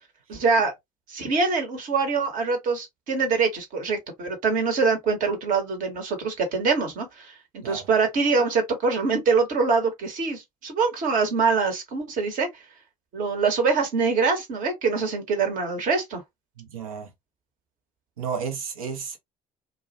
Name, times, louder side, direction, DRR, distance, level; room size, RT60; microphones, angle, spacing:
voice 1, 0.3-0.7 1.1-12.5 13.1-16.2, right 4 dB, 50° right, 1.0 m, -24 dB
voice 2, 16.6-17.1 18.2-19.2, right 6 dB, 75° right, 0.7 m, -32 dB
2.3 x 2.1 x 2.7 m
figure-of-eight pair, 55°, 18 cm